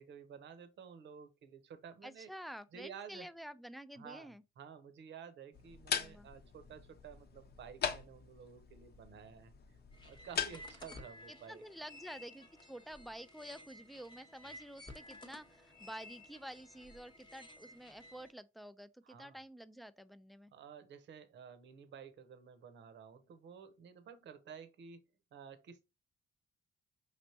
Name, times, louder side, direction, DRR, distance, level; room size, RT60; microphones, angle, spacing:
voice 1, 0.0-2.3 2.7-3.3 4.0-9.8 10.0-11.6 19.0-19.4 20.5-25.0 25.3-25.8, right 7 dB, 65° right, 0.8 m, -52 dB
voice 2, 2.0-4.4 5.9-6.3 11.3-20.5, equal, ahead, 0.3 m, -50 dB
sound 1, 5.5-11.0, left 7 dB, 55° left, 0.7 m, -41 dB
sound 2, 9.9-18.3, left 1 dB, 25° left, 0.9 m, -55 dB
5.1 x 3.3 x 2.7 m
cardioid pair, 90°, 20 cm